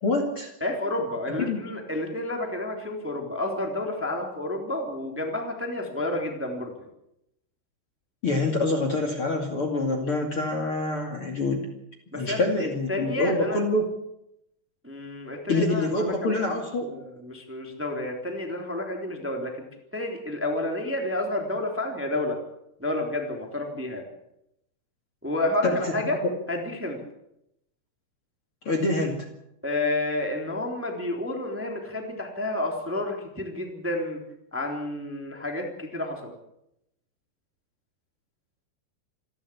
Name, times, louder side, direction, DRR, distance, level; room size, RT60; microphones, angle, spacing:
voice 1, 0.0-0.5 1.4-1.6 8.2-11.6 12.1-13.9 15.5-16.9 25.6-25.9 28.6-29.2, left 2 dB, 40° left, 3 dB, 2.9 m, -26 dB
voice 2, 0.6-6.7 12.1-13.6 14.8-19.7 19.9-22.4 22.8-24.0 25.2-26.2 26.5-27.0 29.6-34.2 34.5-36.3, left 1 dB, 5° right, 2 dB, 2.8 m, -30 dB
27.5 x 12.5 x 8.5 m, 0.82 s
omnidirectional pair, 4.5 m